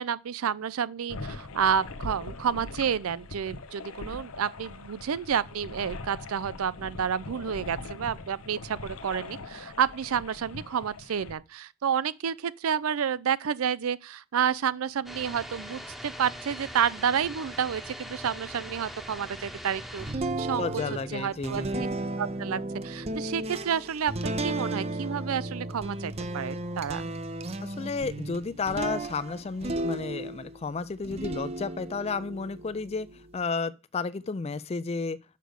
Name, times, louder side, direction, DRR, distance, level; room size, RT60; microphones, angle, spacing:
voice 1, 0.0-20.7 21.1-21.9 22.2-27.0, right 7 dB, 85° right, 0.5 m, -30 dB
sound 1, 1.1-11.3, left 3 dB, 90° left, 0.9 m, -41 dB
sound 2, 15.1-20.2, equal, ahead, 1.0 m, -41 dB
sound 3, 20.0-30.6 31.0-33.4, right 2 dB, 30° right, 0.5 m, -34 dB
voice 2, 20.6-21.8 27.6-35.2, left 4 dB, 30° left, 0.4 m, -32 dB
6.7 x 5.2 x 6.4 m
head